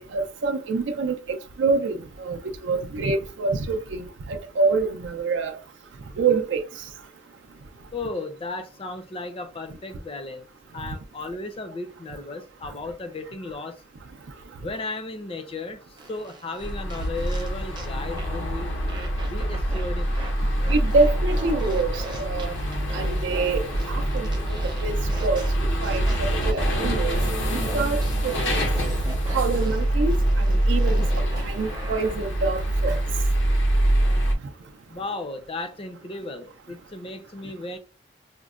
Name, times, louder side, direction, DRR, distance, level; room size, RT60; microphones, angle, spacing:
voice 1, 0.0-5.6 6.2-6.6 20.7-22.6 22.9-24.6 24.8-24.9 25.2-25.4 25.8-27.2 27.5-28.7 29.3-33.0, right 4 dB, 75° right, 0.4 m, -26 dB
voice 2, 7.9-10.4 10.7-13.8 14.6-18.7 19.2-20.2 34.9-37.8, left 2 dB, 30° left, 0.5 m, -35 dB
sound 1, 16.0-17.9 18.2-18.4 18.9-20.3 20.6-32.2, right 2 dB, 25° right, 0.6 m, -41 dB
sound 2, 16.6-34.3, right 1 dB, 85° left, 0.8 m, -24 dB
5.0 x 2.1 x 2.4 m
head